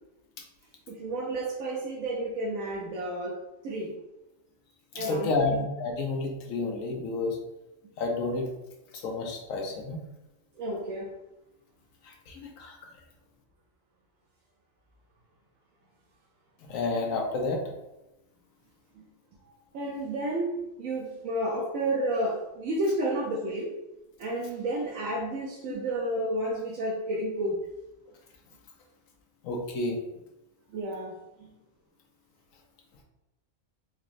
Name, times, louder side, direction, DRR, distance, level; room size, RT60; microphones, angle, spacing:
voice 1, 0.9-3.4 3.6-3.9 4.9-5.6 10.6-11.1 18.9-19.0 19.7-20.5 20.8-23.7 24.2-27.6 30.7-31.5, right 1 dB, 85° right, -2 dB, 1.1 m, -31 dB
voice 2, 4.9-7.4 8.0-8.5 8.9-10.0 12.0-12.7 16.7-17.6 29.4-30.0, left 3 dB, 85° left, 2 dB, 1.1 m, -30 dB
3.9 x 3.1 x 2.5 m, 0.95 s
omnidirectional pair, 1.4 m